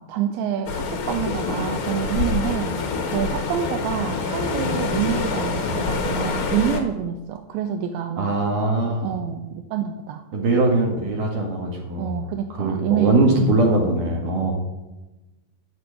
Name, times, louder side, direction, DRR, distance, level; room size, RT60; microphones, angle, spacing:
voice 1, 0.0-2.8 3.1-8.3 9.0-10.2 12.0-13.4 14.3-14.5, right 9 dB, 80° right, 6 dB, 2.5 m, -27 dB
sound 1, 0.7-6.8, left 4 dB, 75° left, 1.2 m, -26 dB
voice 2, 8.2-9.1 10.3-12.2 12.6-14.5, right 2 dB, 60° right, 0 dB, 3.1 m, -21 dB
14.0 x 5.4 x 9.1 m, 1.1 s
omnidirectional pair, 4.5 m